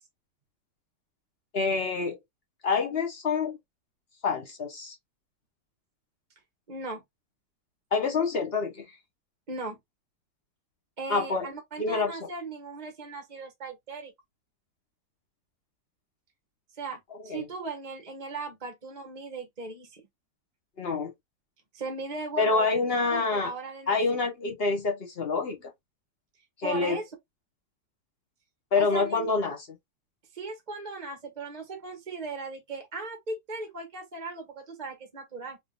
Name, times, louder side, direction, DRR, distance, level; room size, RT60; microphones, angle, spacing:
voice 1, 1.5-2.2 2.6-3.6 4.2-4.9 7.9-8.8 11.1-11.5 11.8-12.2 17.1-17.5 20.8-21.1 22.4-23.5 23.9-25.7 26.6-27.0 28.7-29.8, left 4 dB, 40° left, 1.0 m, -27 dB
voice 2, 6.7-7.0 9.5-9.8 11.0-14.1 16.8-20.0 21.7-24.0 26.6-27.0 28.7-29.3 30.3-35.6, right 3 dB, 30° right, 0.9 m, -38 dB
3.6 x 3.6 x 2.3 m
omnidirectional pair, 1.9 m